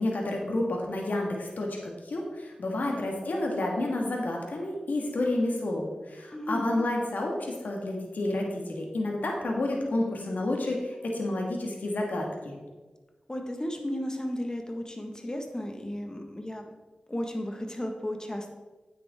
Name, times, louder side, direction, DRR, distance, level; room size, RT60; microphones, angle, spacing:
voice 1, 0.0-12.6, left 1 dB, 85° left, 0 dB, 1.8 m, -30 dB
voice 2, 13.3-16.7 17.1-18.5, equal, 25° left, 3 dB, 1.7 m, -34 dB
9.4 x 8.0 x 3.7 m, 1.2 s
cardioid pair, 40°, 3 cm